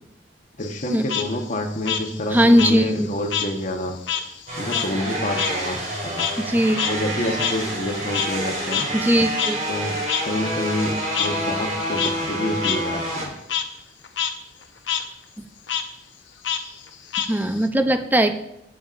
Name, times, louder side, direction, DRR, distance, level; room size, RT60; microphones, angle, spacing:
Frog, 0.6-3.5 3.8-8.5 8.7-8.8 9.4-9.5 10.1-10.2 11.1-11.3 11.8-12.1 12.6-12.8 13.1-13.6 14.0-14.3 14.6-15.0 15.7-15.8 16.4-17.7, left 9 dB, 75° left, 0.8 m, -27 dB
voice 1, 0.6-4.0 4.6-6.3 6.8-8.9 9.7-10.0 10.2-13.3, left 1 dB, 45° left, 3 dB, 1.2 m, -28 dB
voice 2, 2.3-3.1 6.4-6.8 8.9-9.6 15.4-15.5 17.2-18.3, equal, 10° right, 7 dB, 0.6 m, -19 dB
sound 1, 4.5-13.3, right 1 dB, 45° right, 3.5 m, -28 dB
14.5 x 7.2 x 2.6 m, 0.86 s
head